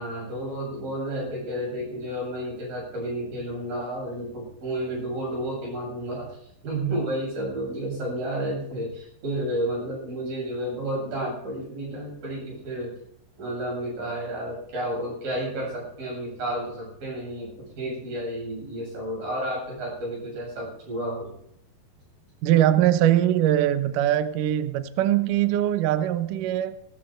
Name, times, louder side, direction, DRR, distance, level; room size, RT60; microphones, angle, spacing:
voice 1, 0.0-6.4 6.6-12.9 13.4-17.5 17.8-21.3, right 1 dB, 55° right, -2 dB, 9.3 m, -31 dB
voice 2, 22.4-26.8, right 12 dB, 70° right, 11 dB, 2.1 m, -22 dB
17.5 x 13.5 x 4.5 m, 0.71 s
omnidirectional pair, 4.8 m